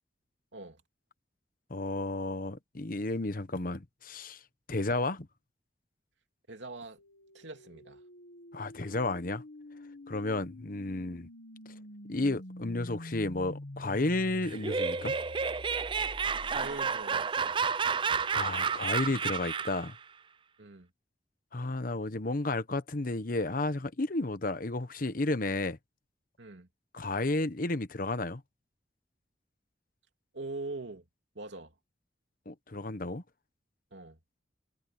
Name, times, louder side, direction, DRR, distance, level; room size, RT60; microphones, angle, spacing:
voice 1, 1.7-4.4 4.7-5.3 8.5-9.4 10.1-11.3 12.1-15.2 18.3-20.0 21.5-25.8 26.9-28.4 32.5-33.2, left 2 dB, 50° left, 1.1 m, -32 dB
voice 2, 6.5-7.0 7.3-8.0 16.5-17.5 20.6-20.9 26.4-26.7 30.3-31.0 31.3-31.7 33.9-34.2, right 3 dB, 90° right, 2.8 m, -42 dB
sound 1, 7.0-17.0, left 1 dB, 90° left, 1.6 m, -47 dB
Laughter, 14.4-19.9, right 5 dB, 30° right, 0.4 m, -31 dB
head